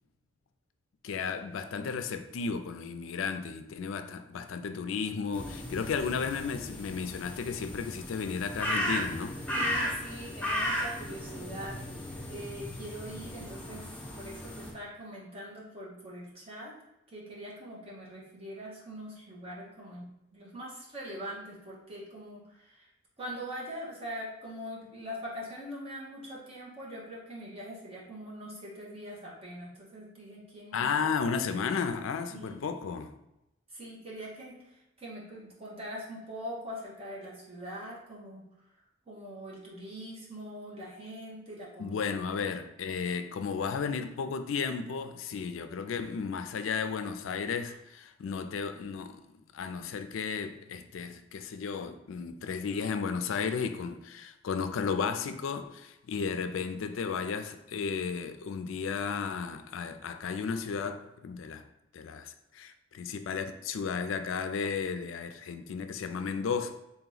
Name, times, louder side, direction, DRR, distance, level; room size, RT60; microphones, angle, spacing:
voice 1, 1.0-9.4 30.7-33.1 41.8-49.2 49.5-61.6 61.9-66.7, left 5 dB, 75° left, 0.4 m, -34 dB
sound 1, 5.3-14.7, equal, 5° left, 0.7 m, -35 dB
voice 2, 9.5-11.8 12.3-16.7 17.1-22.9 23.2-31.1 31.5-31.8 32.3-32.6 33.7-38.4 39.1-42.0 42.3-42.5, equal, 30° right, 1.3 m, -43 dB
3.9 x 2.9 x 3.9 m
head